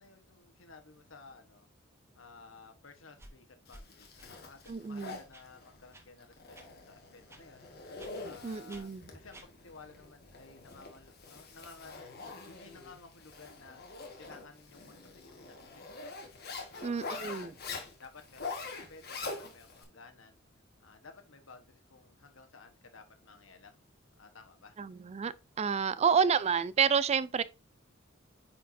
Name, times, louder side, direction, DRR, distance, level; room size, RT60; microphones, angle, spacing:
voice 1, 0.0-1.7 2.1-16.2 16.7-17.5 18.0-20.4 20.8-23.8 24.2-24.8, left 4 dB, 75° left, 1.2 m, -55 dB
sound 1, 3.2-3.3 3.7-3.8 4.2-4.3 4.6-4.8 5.3-5.4 5.9-6.0 6.5-6.7 7.3-7.4 8.0-8.1 8.7-8.8 9.3-9.5, right 1 dB, 15° right, 0.9 m, -52 dB
Zipper (clothing), 3.7-19.8, left 3 dB, 55° left, 1.5 m, -45 dB
voice 2, 4.7-5.2 8.4-9.0 16.8-17.5 24.8-27.4, right 6 dB, 35° right, 0.4 m, -29 dB
9.1 x 4.5 x 2.6 m
head